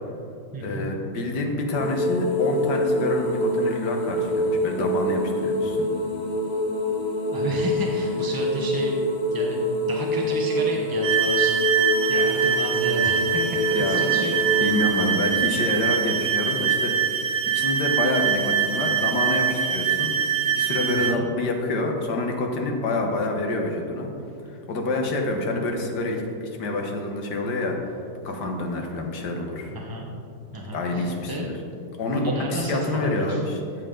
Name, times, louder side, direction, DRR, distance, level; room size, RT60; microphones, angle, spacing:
voice 1, 0.6-5.8 13.8-14.0 14.6-17.2 17.5-20.1 20.5-24.1 24.5-27.8 28.2-29.7 30.7-31.5 32.0-32.2 32.5-33.6, left 2 dB, 70° left, 2 dB, 1.8 m, -27 dB
sound 1, 1.7-14.8, equal, 45° left, 0.6 m, -25 dB
voice 2, 7.3-9.0 9.3-9.6 9.9-11.6 12.1-14.3 20.9-21.3 29.7-30.1 30.5-31.5 32.1-33.4, right 1 dB, 20° right, -2 dB, 0.7 m, -32 dB
glass pad B, 11.0-21.2, right 7 dB, 85° right, 1.4 m, -24 dB
14.5 x 7.6 x 3.8 m, 2.5 s
omnidirectional pair, 1.9 m